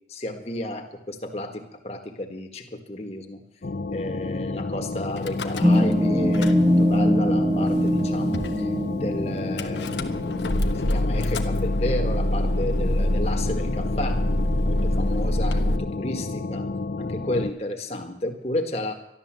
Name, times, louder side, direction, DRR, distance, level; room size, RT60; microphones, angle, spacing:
voice 1, 0.1-3.4 3.9-16.7 17.0-18.9, left 1 dB, 35° left, 4 dB, 1.6 m, -32 dB
sound 1, 3.6-17.5, left 3 dB, 60° left, 0.6 m, -31 dB
Car / Engine starting / Idling, 5.2-6.0 6.2-7.0 7.7-7.8 7.9-8.0 8.3-8.6 9.6-15.8, left 1 dB, 85° left, 1.1 m, -25 dB
sound 2, 5.6-10.6, equal, 15° right, 1.2 m, -22 dB
12.5 x 11.5 x 7.5 m, 0.79 s
head